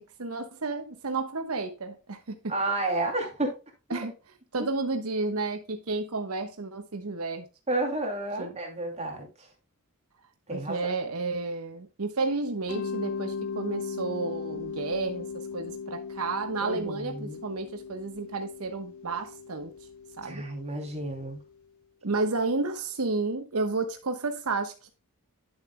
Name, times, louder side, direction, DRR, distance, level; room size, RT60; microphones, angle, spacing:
voice 1, 0.2-2.4 3.9-4.1 4.5-7.4 8.4-8.5 10.5-19.7 20.2-20.4 22.0-24.9, right 3 dB, 80° right, 1.1 m, -31 dB
voice 2, 2.5-3.5 3.9-4.0 4.6-4.7 7.7-9.5 10.5-10.8 16.6-17.4 20.2-21.4, right 2 dB, 30° right, 2.6 m, -31 dB
Mallet percussion, 12.7-21.4, left 5 dB, 70° left, 0.8 m, -38 dB
10.5 x 7.3 x 2.2 m
head